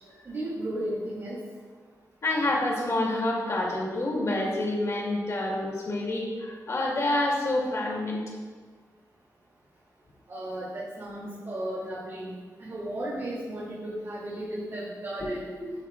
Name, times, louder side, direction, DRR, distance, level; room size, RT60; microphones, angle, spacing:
voice 1, 0.3-1.4 10.3-12.3 12.6-15.5, right 1 dB, 45° right, -6 dB, 2.3 m, -34 dB
voice 2, 2.2-8.2 15.2-15.3 15.6-15.7, left 2 dB, 50° left, -2 dB, 2.3 m, -28 dB
12.5 x 9.8 x 2.3 m, 1.5 s
wide cardioid pair, 135°, 7 cm